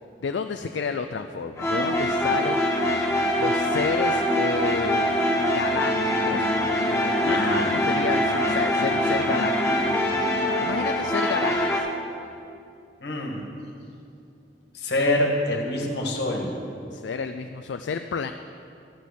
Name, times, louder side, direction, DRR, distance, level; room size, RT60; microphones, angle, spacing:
voice 1, 0.2-2.6 3.3-6.6 7.0-9.5 10.6-11.9 16.9-18.3, left 5 dB, 85° left, 8 dB, 0.4 m, -30 dB
sound 1, 1.6-11.8, equal, 15° left, 1.4 m, -23 dB
voice 2, 7.3-7.7 13.0-13.4 14.7-16.6, left 1 dB, 70° left, 1 dB, 1.8 m, -25 dB
12.5 x 6.1 x 8.4 m, 2.5 s
head